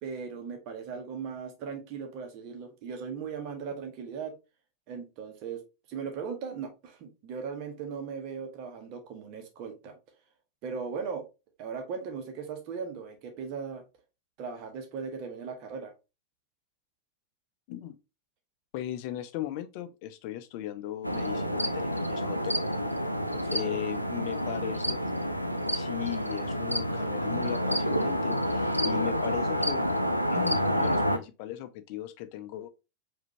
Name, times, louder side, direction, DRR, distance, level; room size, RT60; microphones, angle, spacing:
voice 1, 0.0-4.3 4.9-5.6 5.9-10.0 10.6-11.2 11.6-13.8 14.4-15.9 23.3-23.9, right 6 dB, 40° right, 1.2 m, -38 dB
voice 2, 18.7-22.8 23.5-25.1 25.7-29.9 30.2-32.7, left 13 dB, 45° left, 0.5 m, -37 dB
sound 1, 21.0-31.2, equal, 90° right, 0.4 m, -29 dB
4.9 x 2.7 x 3.0 m
figure-of-eight pair, 90°, 0 cm